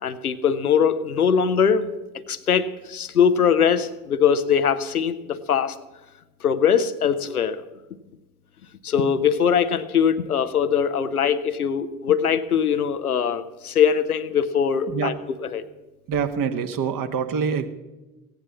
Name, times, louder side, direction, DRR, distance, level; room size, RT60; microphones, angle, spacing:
voice 1, 0.0-1.9 2.3-5.8 6.4-7.6 8.8-15.1 15.4-15.6, left 7 dB, 90° left, 11 dB, 0.6 m, -21 dB
voice 2, 16.1-17.7, right 6 dB, 50° right, 8 dB, 1.5 m, -25 dB
16.0 x 9.0 x 7.0 m, 1.1 s
figure-of-eight pair, 50°, 43 cm